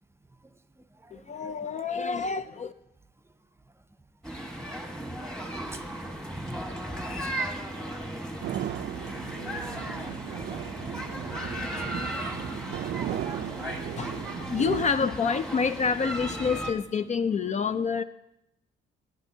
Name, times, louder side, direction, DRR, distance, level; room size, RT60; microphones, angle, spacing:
voice 1, 1.1-2.7 13.9-14.2 14.5-18.0, left 5 dB, 35° left, 12 dB, 0.4 m, -28 dB
sound 1, 4.2-16.7, right 1 dB, 5° left, 1.4 m, -36 dB
sound 2, 8.4-14.9, right 12 dB, 60° right, 0.4 m, -36 dB
voice 2, 12.2-12.8 13.2-14.6, right 2 dB, 15° right, 10 dB, 0.6 m, -45 dB
17.0 x 9.0 x 2.7 m, 0.85 s
cardioid pair, 90°, 20 cm